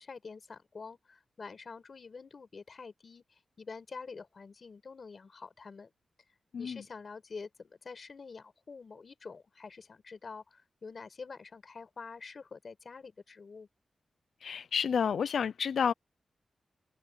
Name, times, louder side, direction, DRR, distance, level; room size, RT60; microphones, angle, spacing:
voice 1, 0.0-5.9 6.6-13.7, left 4 dB, 45° left, 4.9 m, -47 dB
voice 2, 14.4-15.9, left 7 dB, 85° left, 0.4 m, -30 dB
wide cardioid pair, 165°, 0 cm